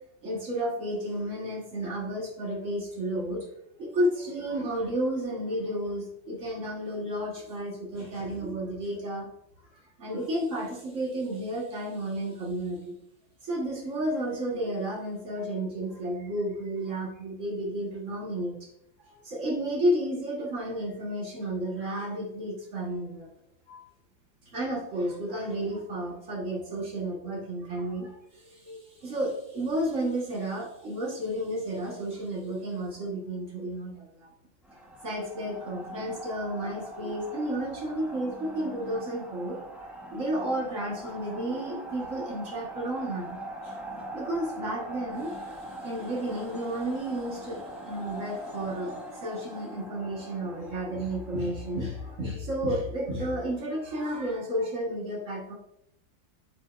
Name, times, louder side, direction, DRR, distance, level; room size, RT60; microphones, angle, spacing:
voice 1, 0.2-3.5 3.8-9.3 10.0-12.9 13.4-18.7 19.0-23.3 23.7-23.8 24.5-34.3 35.0-39.6 40.1-43.4 43.6-43.7 44.1-45.6 45.8-55.5, right 1 dB, 40° right, -2 dB, 1.7 m, -32 dB
sound 1, 34.6-52.4, right 1 dB, ahead, 0.4 m, -42 dB
7.6 x 5.3 x 2.5 m, 0.75 s
omnidirectional pair, 2.1 m